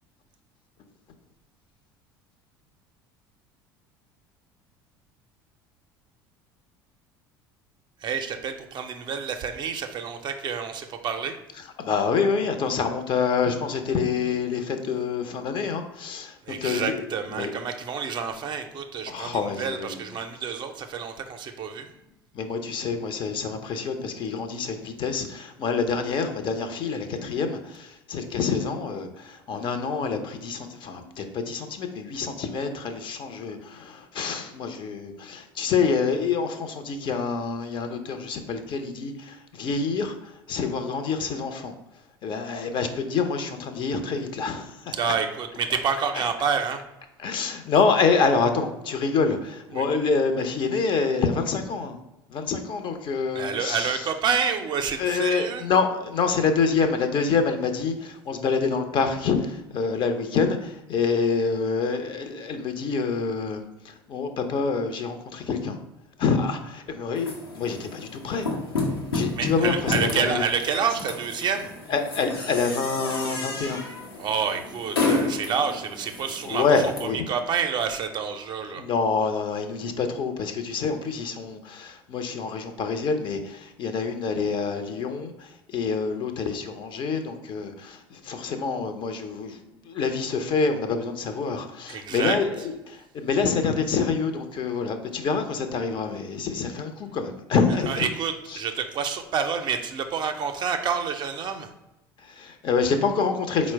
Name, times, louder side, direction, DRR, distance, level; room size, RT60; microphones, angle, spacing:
voice 1, 8.0-11.4 16.5-21.9 45.0-46.8 49.7-49.8 53.3-55.6 69.4-71.7 74.2-76.6 77.3-78.8 91.9-92.4 97.9-101.7, right 6 dB, 40° right, 6 dB, 0.5 m, -28 dB
voice 2, 11.8-17.0 17.4-17.5 19.1-20.1 22.3-41.7 42.2-44.9 46.1-46.2 47.2-52.0 52.3-54.1 55.0-65.8 66.2-68.5 69.1-70.4 71.9-73.8 76.5-77.2 78.8-98.0 98.5-98.6 102.2-103.7, left 5 dB, 40° left, 7 dB, 0.6 m, -27 dB
sound 1, 67.2-77.0, left 3 dB, 85° left, 0.8 m, -31 dB
4.3 x 2.1 x 4.4 m, 0.94 s
figure-of-eight pair, 65°, 12 cm